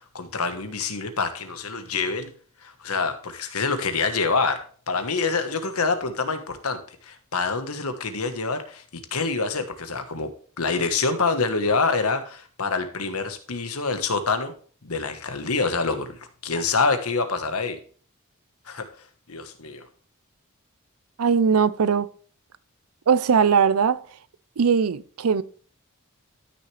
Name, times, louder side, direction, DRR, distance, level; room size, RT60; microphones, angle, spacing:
voice 1, 0.0-2.3 2.6-4.6 4.9-8.8 9.1-10.3 10.6-14.5 14.8-16.1 16.4-17.8 18.7-18.9 19.3-19.9, left 4 dB, 90° left, 1.3 m, -26 dB
voice 2, 21.2-22.1 23.1-24.0 24.6-25.4, right 6 dB, 85° right, 0.5 m, -20 dB
13.0 x 6.5 x 3.3 m
head